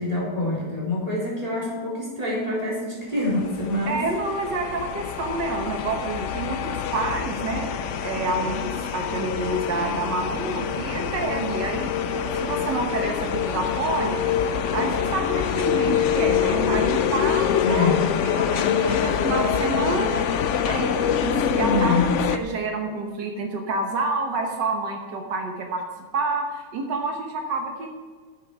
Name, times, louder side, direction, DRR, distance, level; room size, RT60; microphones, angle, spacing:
voice 1, 0.0-4.0 17.6-18.1 21.5-22.2, left 2 dB, 20° right, -6 dB, 4.0 m, -26 dB
sound 1, 3.4-22.4, left 8 dB, 65° left, 0.7 m, -25 dB
voice 2, 3.8-7.7 8.0-18.0 18.2-20.2 20.6-22.0 22.3-25.8 26.1-27.9, right 3 dB, 85° right, 3 dB, 1.9 m, -28 dB
10.5 x 9.0 x 4.8 m, 1.5 s
omnidirectional pair, 1.8 m